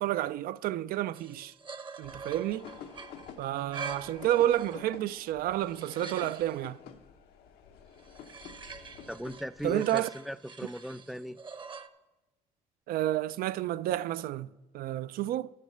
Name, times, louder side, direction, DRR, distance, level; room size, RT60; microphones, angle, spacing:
voice 1, 0.0-1.5 2.0-2.7 3.4-6.8 9.6-10.1 12.9-14.5 14.7-15.5, right 13 dB, 75° right, 0.4 m, -30 dB
sound 1, 1.1-5.0 5.4-6.6 8.0-11.9, right 5 dB, 30° right, 0.8 m, -45 dB
sound 2, 2.0-9.7, left 7 dB, 90° left, 0.9 m, -50 dB
voice 2, 9.1-11.4, equal, ahead, 0.3 m, -38 dB
11.0 x 6.6 x 6.5 m
cardioid pair, 80°, 16 cm